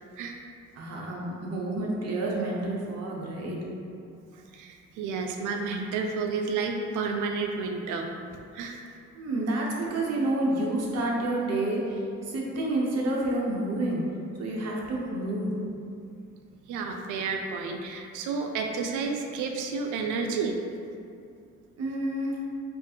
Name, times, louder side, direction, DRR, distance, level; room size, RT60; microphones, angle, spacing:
voice 1, 0.8-3.6 9.1-14.0 14.4-15.5 21.8-22.4, right 1 dB, 55° right, -3 dB, 0.9 m, -29 dB
voice 2, 4.3-8.1 8.5-8.8 16.7-20.6, right 4 dB, 85° right, 3 dB, 0.5 m, -31 dB
4.4 x 2.5 x 2.8 m, 2.5 s
cardioid pair, 90°, 30 cm